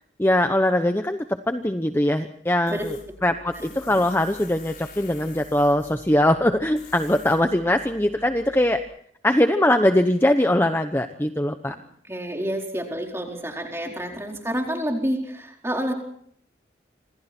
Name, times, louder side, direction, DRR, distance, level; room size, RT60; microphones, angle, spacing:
voice 1, 0.2-2.9 3.2-8.8 9.2-11.7, left 1 dB, 10° left, 7 dB, 1.0 m, -21 dB
Tools, 2.7-8.8, left 4 dB, 55° left, 6.4 m, -47 dB
voice 2, 12.1-15.9, equal, 15° right, 1 dB, 4.5 m, -28 dB
27.0 x 26.5 x 4.5 m, 0.66 s
head